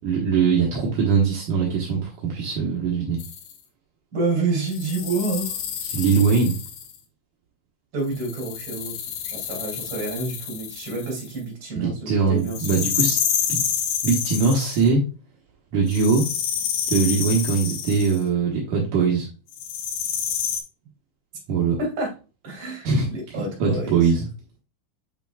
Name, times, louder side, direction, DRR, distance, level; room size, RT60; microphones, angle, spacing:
voice 1, 0.0-3.2 5.8-6.6 11.8-13.2 13.5-13.6 14.0-15.0 15.7-16.3 16.9-19.3 21.5-21.8 22.8-23.1 23.6-24.3, right 5 dB, 70° right, -3 dB, 2.0 m, -21 dB
sound 1, 3.2-3.5 4.7-7.0 8.1-11.3 12.5-14.9 15.9-18.2 19.5-20.6, left 8 dB, 75° left, 2.7 m, -28 dB
voice 2, 4.1-5.6 7.9-8.9 9.2-12.9 21.8-22.1 22.4-24.1, right 3 dB, 35° right, -1 dB, 3.1 m, -28 dB
8.3 x 5.9 x 2.3 m, 0.32 s
omnidirectional pair, 5.3 m